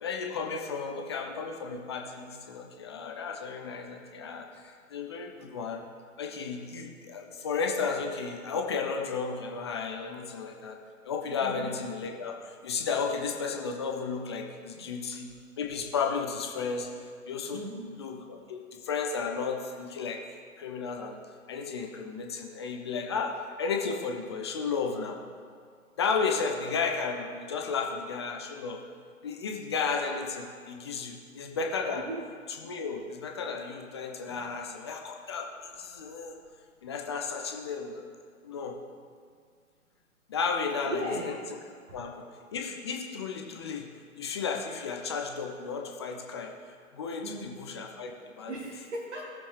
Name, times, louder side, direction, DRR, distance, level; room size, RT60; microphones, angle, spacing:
voice 1, 0.0-5.8 6.2-10.8 11.0-15.3 15.6-16.9 17.3-17.6 18.0-20.2 20.6-21.2 21.5-25.2 26.0-28.8 29.2-32.1 32.6-36.3 36.8-38.1 38.4-38.8 40.3-41.4 41.9-43.9 44.2-46.5 46.9-48.5, left 5 dB, 20° left, 2 dB, 0.5 m, -33 dB
voice 2, 11.4-11.7 14.7-15.0 17.5-18.0 31.9-32.2 34.3-34.4 40.9-41.3 41.9-42.0 47.2-47.6 48.5-49.3, right 1 dB, 55° right, -3 dB, 1.8 m, -37 dB
18.0 x 6.9 x 3.3 m, 2.1 s
figure-of-eight pair, 125°, 43 cm